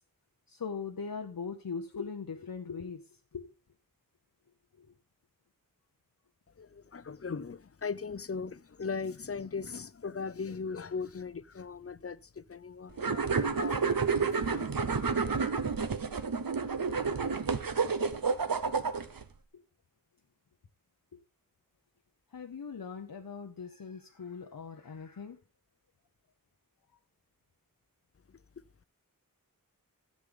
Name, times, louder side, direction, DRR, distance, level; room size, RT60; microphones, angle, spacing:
voice 1, 0.5-3.0 3.3-3.5 4.8-4.9 21.1-21.2 22.3-25.4, left 5 dB, 80° left, 0.8 m, -40 dB
voice 2, 6.6-14.7, left 5 dB, 40° left, 0.5 m, -39 dB
sound 1, 13.0-19.2, right 5 dB, 80° right, 0.9 m, -30 dB
13.5 x 7.4 x 3.7 m
wide cardioid pair, 45°, 34 cm